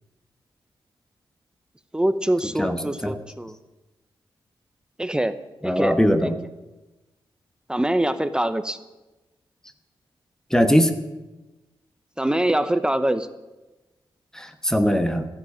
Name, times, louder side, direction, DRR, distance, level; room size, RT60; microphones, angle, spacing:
voice 1, 1.9-3.6 5.0-6.3 7.7-8.8 12.2-13.3, right 1 dB, 10° right, 11 dB, 0.8 m, -24 dB
voice 2, 2.6-3.2 5.6-6.3 10.5-11.0 14.3-15.3, equal, 5° left, 8 dB, 1.3 m, -21 dB
15.0 x 11.0 x 8.7 m, 1.1 s
wide cardioid pair, 115°, 9 cm